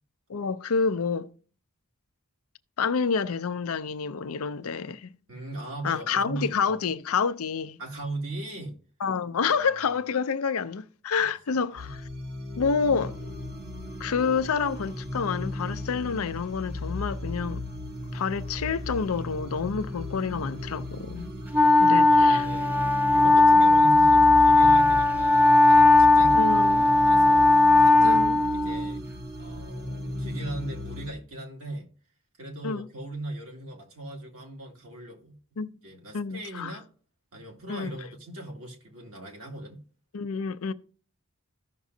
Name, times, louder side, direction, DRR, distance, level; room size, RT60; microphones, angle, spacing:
voice 1, 0.3-1.3 2.8-5.1 5.8-7.8 9.0-12.0 12.6-13.1 14.0-17.6 18.1-21.3 21.8-22.5 26.3-26.9 27.9-28.4 32.6-32.9 35.6-35.7 36.1-36.7 37.7-37.9 40.1-40.7, left 5 dB, 75° left, 0.5 m, -28 dB
voice 2, 5.3-6.8 7.8-8.8 9.4-9.9 11.2-11.3 11.7-11.9 22.0-22.7 23.1-28.2 28.5-29.0 29.4-31.9 32.4-35.4 35.8-36.9 37.3-39.8, right 1 dB, 70° right, 2.4 m, -39 dB
sound 1, 11.8-31.1, left 1 dB, 45° right, 1.1 m, -36 dB
Wind instrument woodwind instrument, 21.5-29.1, left 2 dB, 10° right, 0.4 m, -18 dB
14.5 x 6.0 x 2.7 m
head